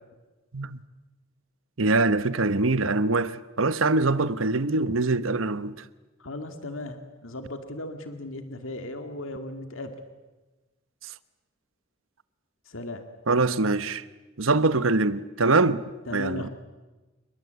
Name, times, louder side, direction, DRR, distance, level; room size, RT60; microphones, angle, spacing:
voice 1, 1.8-5.7 13.3-14.0 14.4-15.8 16.1-16.5, right 3 dB, 75° right, 1.0 m, -23 dB
voice 2, 6.2-9.9 12.7-13.0 16.1-16.5, left 2 dB, 75° left, 2.3 m, -36 dB
28.5 x 22.5 x 8.2 m
head